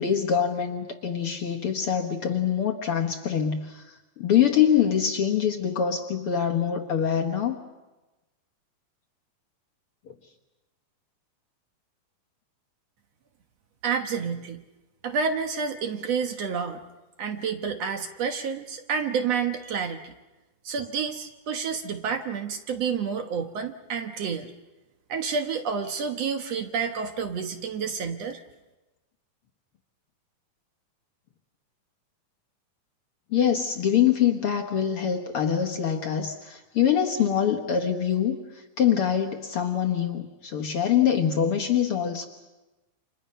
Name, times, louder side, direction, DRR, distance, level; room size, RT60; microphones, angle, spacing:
voice 1, 0.0-3.8 4.2-7.6 33.3-38.4 38.8-42.3, left 8 dB, 55° left, 3 dB, 1.9 m, -24 dB
voice 2, 13.8-14.6 15.0-16.8 17.2-20.1 20.6-24.5 25.1-28.4, right 6 dB, 60° right, 6 dB, 2.2 m, -29 dB
29.5 x 26.5 x 5.6 m, 1.1 s
omnidirectional pair, 3.6 m